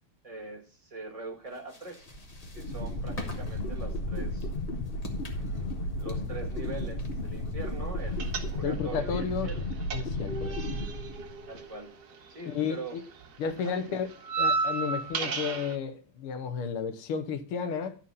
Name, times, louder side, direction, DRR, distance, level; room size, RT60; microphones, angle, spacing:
voice 1, 0.2-2.1 2.5-4.5 5.3-9.6 11.5-11.9 12.3-13.0 13.6-14.1, right 2 dB, 20° right, 1.5 m, -42 dB
sound 1, 1.5-8.8, left 2 dB, 25° left, 0.9 m, -49 dB
sound 2, 2.1-11.6, left 1 dB, 70° left, 0.5 m, -34 dB
sound 3, 8.2-9.0 9.2-12.6 12.9-15.8, right 3 dB, 55° right, 1.5 m, -33 dB
voice 2, 8.6-9.5 9.9-10.6 12.5-13.0 13.4-14.1 14.4-18.0, left 6 dB, 90° left, 1.8 m, -32 dB
11.5 x 4.4 x 5.5 m
omnidirectional pair, 2.4 m